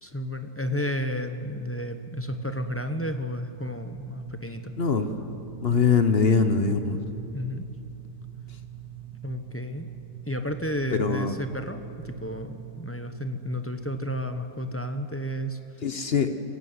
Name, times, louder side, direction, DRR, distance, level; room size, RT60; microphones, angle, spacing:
voice 1, 0.0-4.7 7.3-7.7 9.2-9.9 10.3-15.6, left 1 dB, 15° left, 7 dB, 0.5 m, -32 dB
sound 1, 1.0-14.4, right 12 dB, 70° right, 1.6 m, -43 dB
voice 2, 4.8-5.1 5.6-7.0 10.9-11.3 15.8-16.3, left 5 dB, 40° left, 8 dB, 1.1 m, -22 dB
21.5 x 16.0 x 9.5 m, 2.7 s
omnidirectional pair, 1.8 m